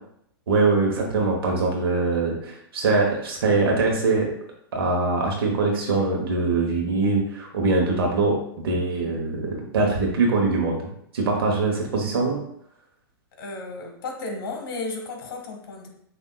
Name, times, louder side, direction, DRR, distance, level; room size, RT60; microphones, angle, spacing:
voice 1, 0.5-4.3 4.7-10.8 11.1-12.4, right 3 dB, 75° right, 0 dB, 1.0 m, -23 dB
voice 2, 8.9-9.2 13.4-15.9, left 3 dB, 60° left, 3 dB, 1.2 m, -34 dB
6.5 x 2.7 x 2.2 m, 0.73 s
hypercardioid pair, 120°, 13 cm